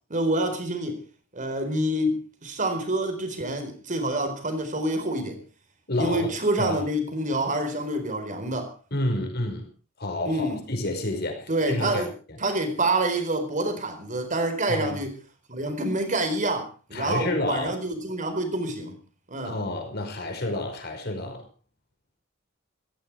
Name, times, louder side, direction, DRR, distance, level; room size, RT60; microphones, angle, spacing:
voice 1, 0.1-1.0 1.3-5.4 6.0-8.7 10.2-10.6 11.5-12.1 12.4-15.1 15.5-19.0 19.3-19.5, right 1 dB, 40° right, 8 dB, 4.3 m, -27 dB
voice 2, 5.9-6.3 6.6-6.8 8.9-9.7 10.0-12.0 14.7-15.0 16.9-17.7 19.4-21.5, left 1 dB, 55° left, 4 dB, 5.3 m, -29 dB
16.5 x 14.5 x 4.8 m, 0.35 s
head